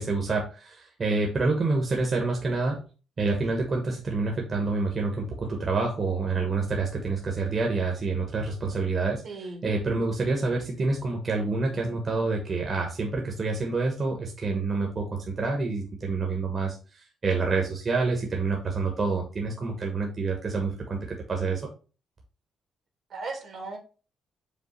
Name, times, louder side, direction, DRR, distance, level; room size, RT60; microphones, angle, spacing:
voice 1, 0.0-2.8 3.2-21.6, right 3 dB, 40° right, 0 dB, 1.1 m, -28 dB
voice 2, 9.2-9.7 23.1-23.8, right 3 dB, 60° right, 4 dB, 1.5 m, -36 dB
5.2 x 2.3 x 4.3 m, 0.35 s
cardioid pair, 90°, 0 cm